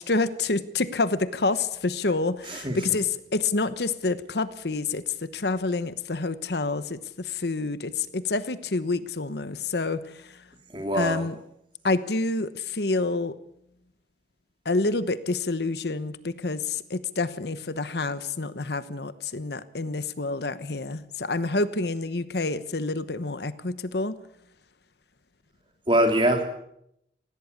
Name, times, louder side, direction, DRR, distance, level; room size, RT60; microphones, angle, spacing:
voice 1, 0.0-10.4 10.9-11.3 11.8-13.4 14.6-24.2, left 3 dB, 70° left, 14 dB, 1.0 m, -28 dB
voice 2, 10.7-11.3 25.9-26.4, right 1 dB, 30° right, 5 dB, 3.1 m, -23 dB
19.0 x 16.5 x 8.6 m, 0.77 s
head